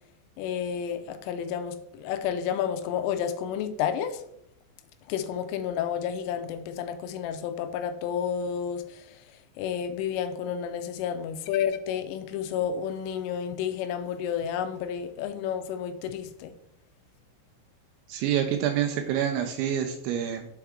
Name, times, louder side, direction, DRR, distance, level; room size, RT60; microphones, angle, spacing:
voice 1, 0.4-4.2 5.1-9.1 9.6-16.5, left 8 dB, 85° left, 3.1 m, -31 dB
voice 2, 18.1-20.5, right 9 dB, 85° right, 2.7 m, -27 dB
7.5 x 4.5 x 3.6 m
omnidirectional pair, 5.7 m